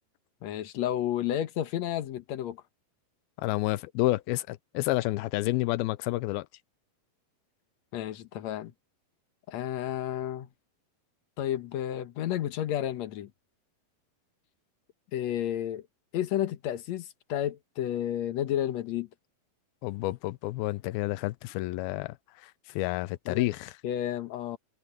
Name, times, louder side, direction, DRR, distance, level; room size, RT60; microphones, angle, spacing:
voice 1, 0.4-2.6 7.9-8.7 9.5-10.5 11.4-13.3 15.1-15.8 16.1-19.1 23.3-23.5 23.8-24.6, left 11 dB, 65° left, 1.9 m, -31 dB
voice 2, 3.4-6.5 19.8-22.1 22.4-23.7, left 19 dB, 90° left, 2.5 m, -29 dB
omnidirectional pair, 4.3 m